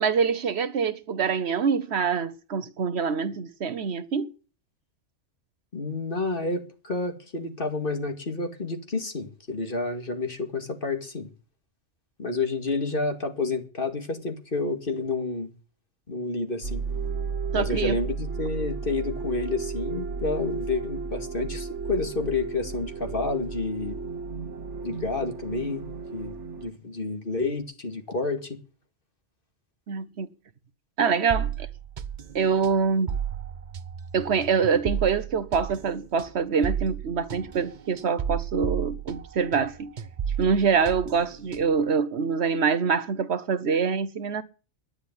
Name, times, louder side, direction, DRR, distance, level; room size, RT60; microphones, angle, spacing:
voice 1, 0.0-4.3 17.5-18.0 29.9-30.3 31.0-31.7 32.3-33.2 34.1-39.9 40.4-44.4, right 6 dB, 65° right, 1.1 m, -25 dB
voice 2, 5.7-11.3 12.2-15.5 16.1-16.8 17.5-24.0 24.8-25.8 26.1-28.6, left 3 dB, 50° left, 2.3 m, -29 dB
sound 1, 16.6-26.7, right 5 dB, 80° right, 1.4 m, -33 dB
sound 2, 31.3-39.7 40.0-41.9, right 8 dB, 45° right, 0.9 m, -33 dB
10.5 x 10.0 x 9.4 m
omnidirectional pair, 1.2 m